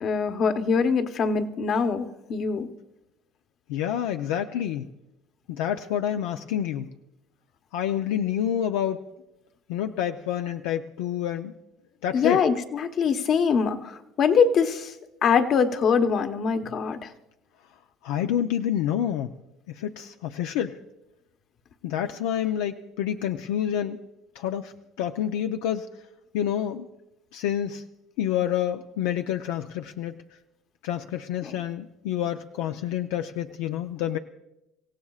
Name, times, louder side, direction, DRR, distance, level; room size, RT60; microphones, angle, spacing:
voice 1, 0.0-2.7 12.1-13.8 14.2-14.9 15.2-17.1 31.4-31.5, left 6 dB, 50° left, 7 dB, 1.1 m, -23 dB
voice 2, 3.7-4.9 5.5-6.9 7.7-9.0 9.7-11.5 12.0-12.4 18.0-19.3 19.7-20.8 21.8-24.0 24.4-24.7 25.0-25.9 26.3-26.9 27.3-27.8 28.2-30.1 30.8-34.2, left 10 dB, 85° left, 6 dB, 0.5 m, -28 dB
26.0 x 16.0 x 2.4 m, 0.92 s
supercardioid pair, 100°, 0 cm